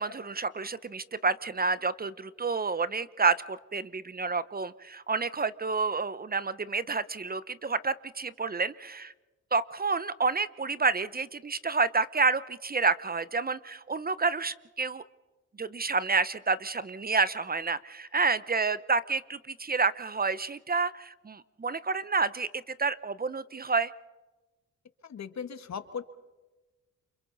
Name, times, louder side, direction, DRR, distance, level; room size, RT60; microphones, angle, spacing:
voice 1, 0.0-9.1 9.5-15.0 15.6-22.5 22.8-23.9, right 4 dB, 30° right, 16 dB, 0.8 m, -29 dB
voice 2, 25.0-26.0, left 7 dB, 60° left, 10 dB, 1.6 m, -38 dB
29.0 x 27.0 x 4.0 m, 1.2 s
cardioid pair, 75°, 30 cm